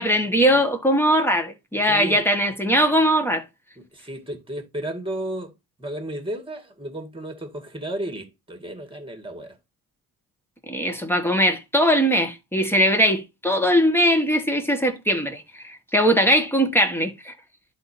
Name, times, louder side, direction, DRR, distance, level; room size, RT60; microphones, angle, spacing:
voice 1, 0.0-3.4 10.7-17.3, equal, 5° left, 1.8 m, -20 dB
voice 2, 1.9-2.2 3.8-5.5 5.8-9.6, right 1 dB, 10° right, 2.2 m, -33 dB
11.0 x 4.2 x 2.8 m
supercardioid pair, 60°, 43 cm